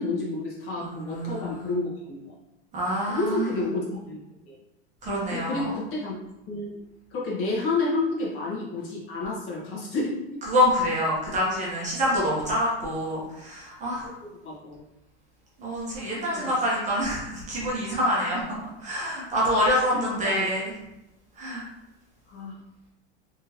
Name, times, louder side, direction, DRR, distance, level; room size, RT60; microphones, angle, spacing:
voice 1, 0.0-2.2 3.1-4.2 4.5-4.6 5.3-6.1 6.5-6.7 7.1-10.4 14.2-14.8 16.3-16.5 19.9-20.5 22.3-22.5, left 3 dB, 40° left, -5 dB, 1.5 m, -30 dB
voice 2, 0.8-1.7 2.7-3.5 5.0-5.7 10.5-14.1 15.6-18.4 18.8-20.7 21.4-21.6, equal, 20° right, -5 dB, 1.1 m, -26 dB
3.6 x 3.6 x 2.9 m, 0.94 s
supercardioid pair, 150°, 32 cm